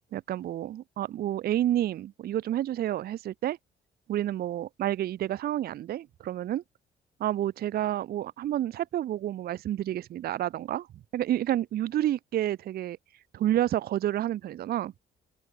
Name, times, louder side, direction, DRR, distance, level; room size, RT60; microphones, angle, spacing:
voice 1, 0.1-3.6 4.1-6.6 7.2-10.9 11.1-13.0 13.3-14.9, right 12 dB, 50° right, 0.4 m, -29 dB
open air
cardioid pair, 90°, 20 cm